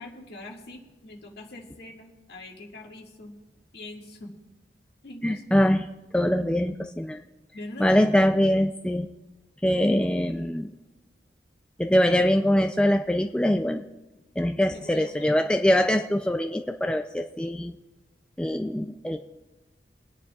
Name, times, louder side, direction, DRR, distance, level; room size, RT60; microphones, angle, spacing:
voice 1, 0.0-3.3 3.7-4.3 5.0-5.4 7.5-7.9 14.8-15.4, left 2 dB, 60° left, -1 dB, 2.0 m, -43 dB
voice 2, 5.2-5.9 6.1-7.2 7.8-9.1 9.6-10.8 11.8-13.9 14.4-17.7 18.4-19.2, equal, 5° left, 5 dB, 0.3 m, -23 dB
27.5 x 9.7 x 2.4 m, 1.1 s
head